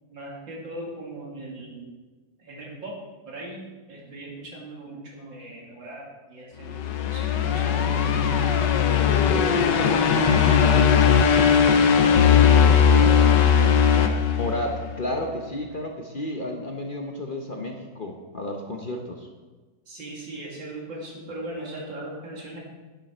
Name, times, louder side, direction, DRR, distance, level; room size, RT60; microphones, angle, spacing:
voice 1, 0.1-1.9 2.4-2.9 3.2-7.8 9.6-10.2 12.0-14.2 19.9-22.6, right 2 dB, 85° right, -3 dB, 3.0 m, -38 dB
sound 1, 6.7-15.0, left 7 dB, 75° left, 1.5 m, -19 dB
voice 2, 9.2-10.1 14.3-19.3, left 1 dB, 40° left, 2 dB, 0.7 m, -32 dB
10.5 x 9.4 x 4.4 m, 1.3 s
omnidirectional pair, 2.0 m